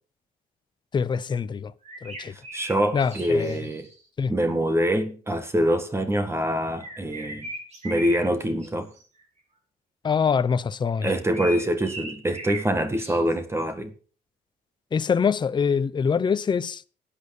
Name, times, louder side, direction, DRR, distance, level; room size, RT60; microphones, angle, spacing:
voice 1, 0.9-1.7 2.0-2.3 2.9-3.6 4.2-4.3 10.0-11.1 14.9-16.8, left 6 dB, 25° left, 0.7 m, -24 dB
sound 1, 1.8-4.0 6.8-8.7 8.9-9.2 11.0-12.7 12.9-13.6, right 1 dB, 40° right, 5.1 m, -38 dB
voice 2, 2.3-3.9 4.3-7.5 7.8-8.9 11.0-13.9, equal, 15° right, 1.8 m, -25 dB
11.5 x 8.8 x 7.1 m
cardioid pair, 110°, 17 cm